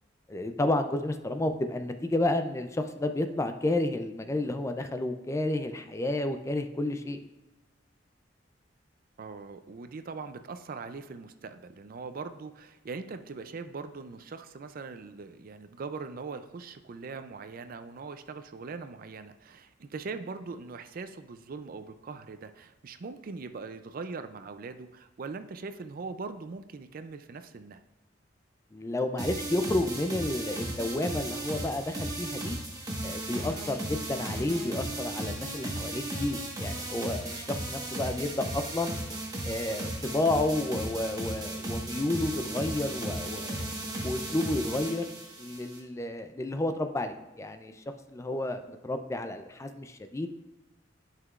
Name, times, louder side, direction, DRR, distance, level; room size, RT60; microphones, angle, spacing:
voice 1, 0.3-7.2 28.7-32.6 33.0-38.9 39.4-43.7 44.0-45.1 45.4-50.3, left 1 dB, 15° left, 7 dB, 0.4 m, -31 dB
voice 2, 9.2-27.8, right 4 dB, 50° right, 10 dB, 0.4 m, -41 dB
sound 1, 29.2-45.8, right 1 dB, 20° right, 1.3 m, -36 dB
11.0 x 5.8 x 2.4 m, 1.0 s
head